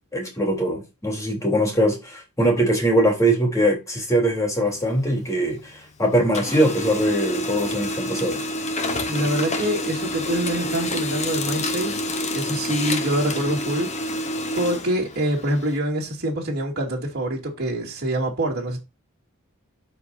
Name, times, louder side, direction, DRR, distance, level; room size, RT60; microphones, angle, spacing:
voice 1, 0.1-8.4, right 1 dB, 15° left, 3.3 m, -22 dB
Printer, 4.7-5.9 6.2-15.8, left 1 dB, 30° left, 1.2 m, -28 dB
voice 2, 9.1-12.0 12.3-13.9 14.5-18.8, right 1 dB, 50° right, 2.7 m, -25 dB
12.5 x 4.6 x 2.6 m
head